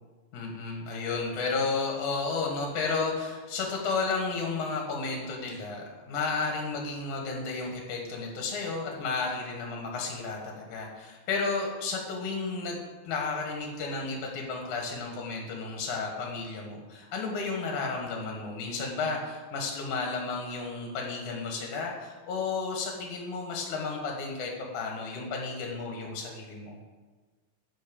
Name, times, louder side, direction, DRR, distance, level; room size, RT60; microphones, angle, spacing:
voice 1, 0.3-26.7, left 4 dB, 60° left, 0 dB, 2.3 m, -32 dB
10.5 x 5.4 x 6.8 m, 1.3 s
omnidirectional pair, 4.9 m